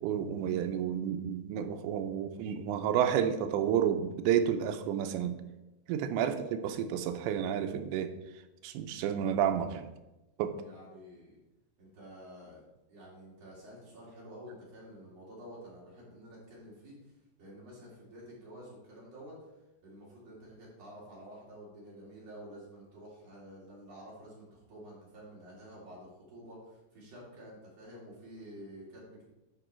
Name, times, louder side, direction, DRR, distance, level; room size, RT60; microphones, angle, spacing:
voice 1, 0.0-5.4 5.9-8.2 8.6-9.9 10.4-10.6, right 9 dB, 85° right, 2.8 m, -30 dB
voice 2, 10.6-11.4 11.8-12.6 12.9-17.0 17.4-19.4 19.8-29.3, equal, 40° right, 3.9 m, -50 dB
12.0 x 5.4 x 4.4 m
omnidirectional pair, 5.1 m